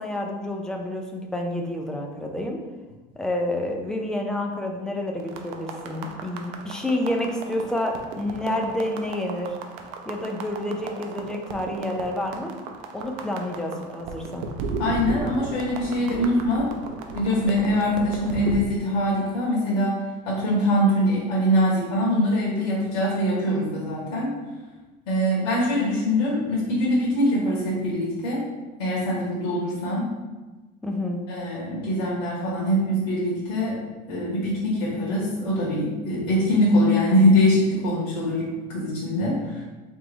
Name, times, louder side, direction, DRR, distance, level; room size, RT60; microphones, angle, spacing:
voice 1, 0.0-2.6 3.2-9.6 10.1-12.5 12.9-14.5 30.8-31.2, left 1 dB, 5° left, 1 dB, 0.3 m, -29 dB
sound 1, 5.2-18.6, right 4 dB, 60° right, 0.6 m, -35 dB
voice 2, 14.8-16.7 17.1-20.0 20.2-24.4 25.1-28.4 28.8-30.1 31.3-33.8 34.1-38.4 38.7-39.6, equal, 85° left, -6 dB, 1.5 m, -23 dB
3.8 x 3.4 x 3.5 m, 1.2 s
cardioid pair, 165°, 20 cm